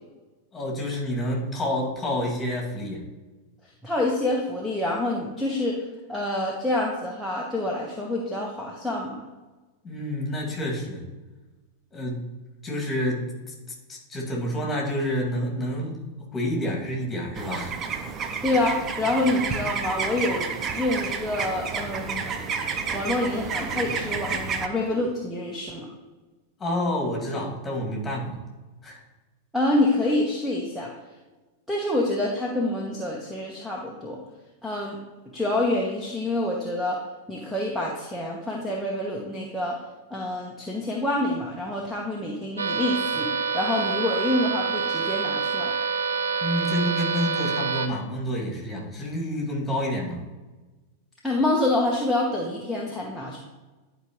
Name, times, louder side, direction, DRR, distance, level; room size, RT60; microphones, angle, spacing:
voice 1, 0.5-3.0 9.8-11.0 11.9-12.2 12.6-13.5 13.9-16.0 16.3-17.8 26.6-28.4 28.8-29.0 46.4-50.2, equal, 15° left, -2 dB, 2.2 m, -28 dB
voice 2, 3.8-5.8 6.1-9.2 18.4-20.5 20.7-22.4 22.9-25.9 29.5-30.9 31.7-34.2 34.6-35.0 35.3-37.0 37.3-39.8 40.1-43.3 43.5-45.7 51.2-53.4, left 1 dB, ahead, -2 dB, 1.0 m, -27 dB
sound 1, 17.3-24.7, right 5 dB, 30° right, 0.6 m, -30 dB
sound 2, 42.6-47.9, right 5 dB, 75° right, 0.6 m, -27 dB
11.0 x 4.8 x 3.0 m, 1.2 s
figure-of-eight pair, 90°, 0 cm